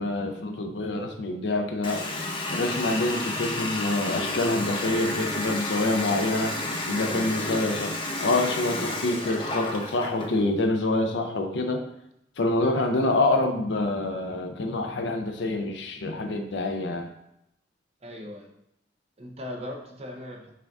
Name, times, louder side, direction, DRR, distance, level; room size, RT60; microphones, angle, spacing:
voice 1, 0.0-2.1 2.5-6.6 6.9-7.9 8.2-11.8 12.4-17.1, left 2 dB, 80° left, 5 dB, 0.6 m, -26 dB
Water tap faucet, 1.8-10.4, left 2 dB, 30° left, 0.6 m, -31 dB
voice 2, 6.9-7.9 18.0-18.5 19.2-20.5, equal, 35° right, 1 dB, 0.7 m, -39 dB
5.5 x 2.5 x 3.5 m, 0.80 s
head